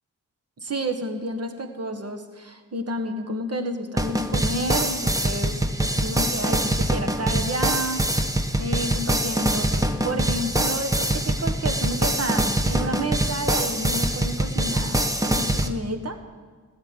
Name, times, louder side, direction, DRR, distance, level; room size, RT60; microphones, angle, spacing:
voice 1, 0.6-8.0 8.6-16.2, right 1 dB, 45° right, 5 dB, 1.5 m, -30 dB
sound 1, 4.0-15.7, right 1 dB, 10° right, 1.0 m, -24 dB
16.0 x 7.3 x 9.8 m, 1.5 s
wide cardioid pair, 100°, 33 cm